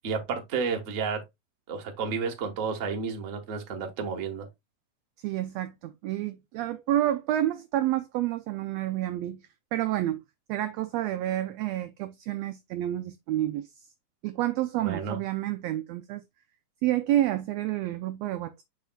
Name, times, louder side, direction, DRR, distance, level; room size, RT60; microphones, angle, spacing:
voice 1, 0.0-1.2 1.7-4.5 14.8-15.2, right 5 dB, 50° right, 0.9 m, -31 dB
voice 2, 5.2-10.2 10.5-13.7 14.2-16.2 16.8-18.6, right 13 dB, 80° right, 1.5 m, -29 dB
6.8 x 6.4 x 2.2 m
omnidirectional pair, 3.4 m